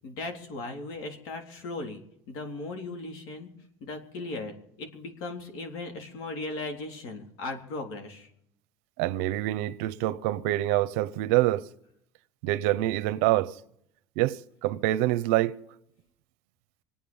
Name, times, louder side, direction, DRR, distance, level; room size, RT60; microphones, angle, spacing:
voice 1, 0.0-3.5 3.8-8.3, left 2 dB, 65° left, 3.7 m, -37 dB
voice 2, 9.0-11.7 12.4-13.6 14.2-15.6, right 16 dB, 80° right, 0.8 m, -26 dB
27.0 x 9.1 x 5.4 m
cardioid pair, 150°, 7 cm